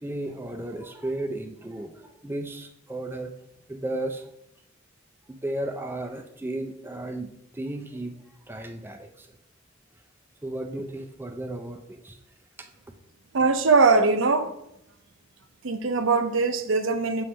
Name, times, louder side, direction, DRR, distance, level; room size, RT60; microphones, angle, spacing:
voice 1, 0.0-3.3 3.7-4.3 5.3-8.2 8.5-9.3 10.4-12.2 12.6-12.7, right 1 dB, 10° right, 4 dB, 0.4 m, -34 dB
voice 2, 13.3-14.5 15.6-17.2, right 4 dB, 65° right, 9 dB, 0.6 m, -21 dB
7.4 x 3.2 x 5.5 m, 0.79 s
head